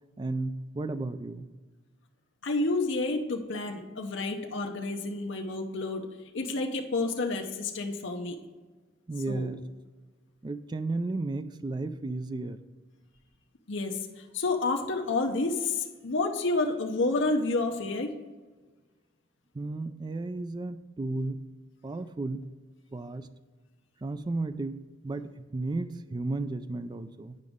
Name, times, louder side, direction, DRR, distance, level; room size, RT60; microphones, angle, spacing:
voice 1, 0.2-1.5 9.1-9.6 10.4-12.6 19.5-21.4 21.8-22.4 22.9-23.3 24.0-27.4, right 2 dB, 20° right, 11 dB, 0.3 m, -33 dB
voice 2, 2.4-6.1 6.3-8.4 9.3-9.5 13.7-18.2, left 3 dB, 60° left, 2 dB, 0.7 m, -29 dB
9.5 x 5.0 x 3.6 m, 1.3 s
head